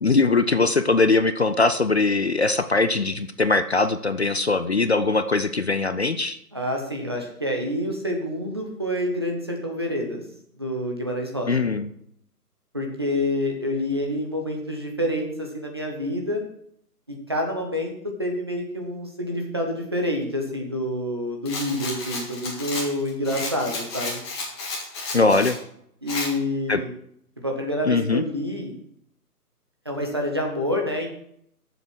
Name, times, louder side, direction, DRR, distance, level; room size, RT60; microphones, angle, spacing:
voice 1, 0.0-6.4 11.5-11.9 25.1-25.6 26.7-26.8 27.8-28.2, left 3 dB, 45° left, 11 dB, 0.5 m, -21 dB
voice 2, 6.5-10.2 10.6-11.7 12.7-16.4 17.1-24.2 26.0-26.9 27.4-28.7 29.9-31.1, left 1 dB, 15° right, 1 dB, 0.7 m, -27 dB
Rattle, 21.4-25.6 26.1-26.3, left 3 dB, 15° left, 1.8 m, -32 dB
9.2 x 7.0 x 6.2 m, 0.70 s
figure-of-eight pair, 145°, 47 cm